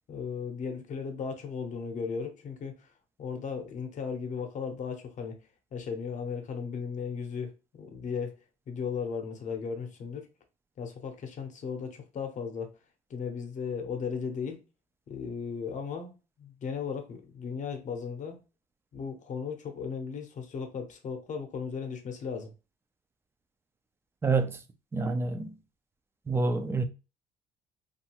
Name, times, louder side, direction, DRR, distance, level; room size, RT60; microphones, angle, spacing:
voice 1, 0.1-2.9 3.2-5.4 5.7-8.4 8.7-10.3 10.8-12.7 13.1-14.6 15.1-18.4 18.9-22.5, left 6 dB, 45° left, 0.7 m, -36 dB
voice 2, 24.2-24.6 24.9-25.6 26.3-26.8, right 3 dB, 15° right, 0.4 m, -27 dB
2.7 x 2.4 x 2.9 m
cardioid pair, 110°, 17 cm